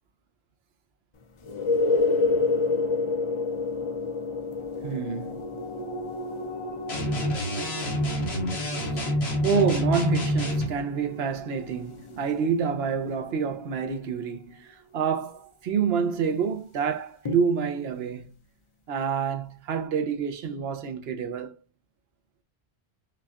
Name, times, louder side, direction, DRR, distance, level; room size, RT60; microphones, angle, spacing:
sound 1, 1.4-13.0 17.3-17.4, left 3 dB, 50° left, 0.3 m, -30 dB
sound 2, 4.6-15.4 15.8-15.9, right 2 dB, 90° left, 1.8 m, -41 dB
voice 1, 4.8-5.4 8.4-8.5 9.4-18.3 18.9-21.6, right 6 dB, 70° right, 0.9 m, -28 dB
sound 3, 6.9-10.7, equal, 70° left, 1.3 m, -27 dB
5.5 x 2.3 x 2.3 m
omnidirectional pair, 1.1 m